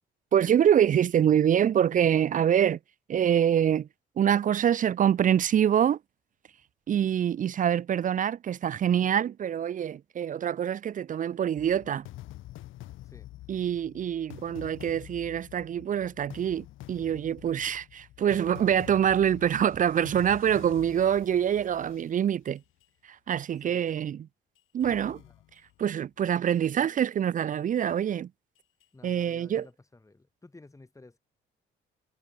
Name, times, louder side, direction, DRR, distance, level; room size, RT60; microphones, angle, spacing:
voice 1, 0.3-2.8 3.1-3.9 4.2-6.0 6.9-12.1 13.5-22.6 23.3-24.3 24.7-25.2 25.8-28.3 29.0-29.7, right 9 dB, 40° right, 0.4 m, -25 dB
sound 1, 11.6-22.8 23.6-23.7 24.6-25.8 26.6-26.8 27.6-27.7 28.6-28.8 29.6-29.7, left 15 dB, 90° left, 5.0 m, -47 dB
voice 2, 23.6-23.9 25.2-25.3 26.0-26.1 28.9-31.2, left 2 dB, 15° left, 2.7 m, -53 dB
cardioid pair, 90°, 20 cm